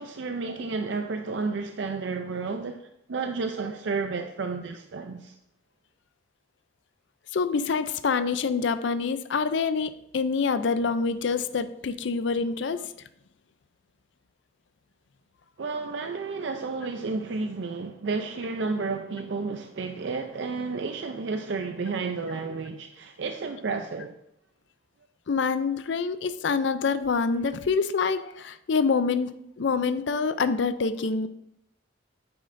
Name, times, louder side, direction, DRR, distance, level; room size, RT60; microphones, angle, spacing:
voice 1, 0.0-2.8 3.1-5.3 15.6-24.1, right 4 dB, 65° right, 0.5 m, -31 dB
voice 2, 7.3-12.9 25.3-31.3, left 5 dB, 70° left, 0.5 m, -26 dB
9.4 x 8.3 x 2.6 m
head